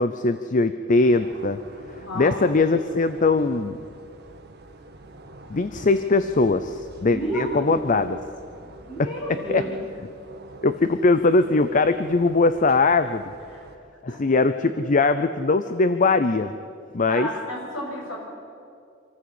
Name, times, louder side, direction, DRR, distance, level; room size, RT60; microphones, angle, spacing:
voice 1, 0.0-1.6 2.2-3.8 5.5-8.2 9.0-9.1 9.5-9.6 10.6-13.3 14.0-16.5 16.9-17.3, left 3 dB, 40° left, 11 dB, 0.6 m, -21 dB
sound 1, 1.0-13.8, right 2 dB, 55° right, 1.8 m, -45 dB
voice 2, 2.0-2.5 7.0-7.9 8.9-9.8 13.5-13.6 14.1-14.2 17.1-18.2, right 1 dB, 75° left, -3 dB, 7.8 m, -31 dB
26.0 x 14.0 x 8.3 m, 2.4 s
head